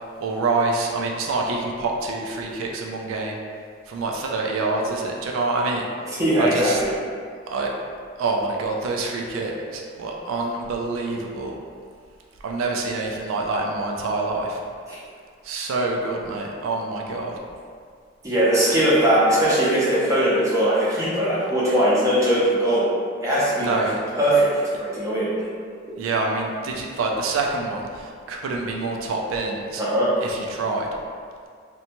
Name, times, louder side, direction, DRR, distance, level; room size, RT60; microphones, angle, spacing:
voice 1, 0.2-3.4 3.9-5.9 6.4-6.8 7.5-7.7 8.2-11.5 12.4-14.6 15.4-17.3 23.6-24.0 26.0-29.8 30.2-30.9, right 3 dB, 85° right, 0 dB, 0.3 m, -26 dB
voice 2, 6.1-6.9 14.9-15.0 18.2-22.9 23.2-23.8 24.2-25.3 29.8-30.1, right 1 dB, 15° right, -9 dB, 0.6 m, -20 dB
2.6 x 2.1 x 2.8 m, 2.1 s
head